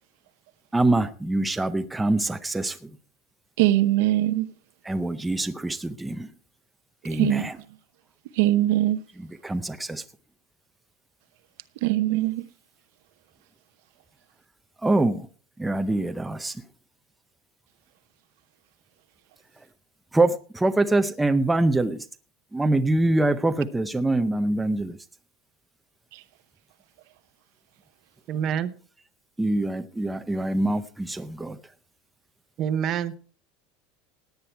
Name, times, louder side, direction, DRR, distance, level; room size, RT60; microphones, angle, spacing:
voice 1, 0.7-2.8 4.9-6.3 7.0-7.5 9.4-10.0 14.8-15.2 15.6-16.5 20.1-22.0 22.5-25.0 29.4-31.6, right 2 dB, 5° right, 0.6 m, -24 dB
voice 2, 3.6-4.5 7.1-7.5 8.3-9.0 11.8-12.4 26.1-26.2, right 15 dB, 65° right, 0.8 m, -22 dB
voice 3, 28.3-28.8 32.6-33.2, right 8 dB, 30° right, 0.9 m, -26 dB
17.0 x 9.5 x 4.5 m
supercardioid pair, 175°, 0 cm